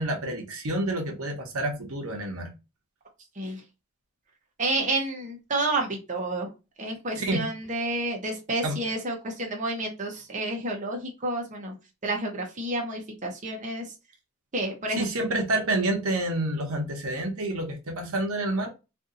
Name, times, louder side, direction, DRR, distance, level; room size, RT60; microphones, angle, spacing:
voice 1, 0.0-2.5 7.2-7.4 8.6-8.8 14.9-18.7, right 2 dB, 85° right, 0.9 m, -28 dB
voice 2, 4.6-6.5 6.8-11.7 12.0-13.9 14.5-15.3, right 2 dB, 35° right, 0.8 m, -30 dB
2.7 x 2.5 x 3.8 m
head